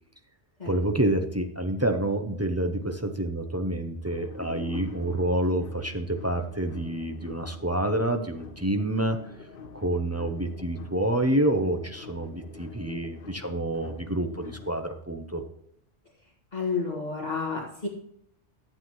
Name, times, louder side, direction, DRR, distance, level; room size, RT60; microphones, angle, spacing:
voice 1, 0.7-9.2 9.7-15.4, right 1 dB, 20° right, 5 dB, 0.5 m, -28 dB
sound 1, 3.9-14.7, left 4 dB, 55° left, 1.1 m, -45 dB
voice 2, 16.5-17.9, left 4 dB, 40° left, -3 dB, 1.8 m, -30 dB
11.5 x 7.7 x 3.0 m, 0.72 s
omnidirectional pair, 1.2 m